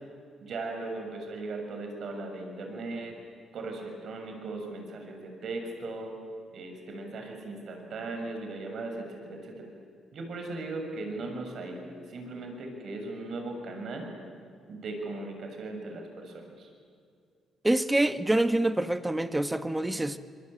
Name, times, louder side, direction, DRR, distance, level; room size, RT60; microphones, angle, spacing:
voice 1, 0.4-3.2 3.5-6.1 6.5-9.7 10.1-14.1 14.7-16.7, right 2 dB, 60° right, 6.6 m, -38 dB
voice 2, 17.6-20.2, right 1 dB, 10° right, 1.3 m, -26 dB
27.0 x 23.5 x 9.0 m
cardioid pair, 90°, 0 cm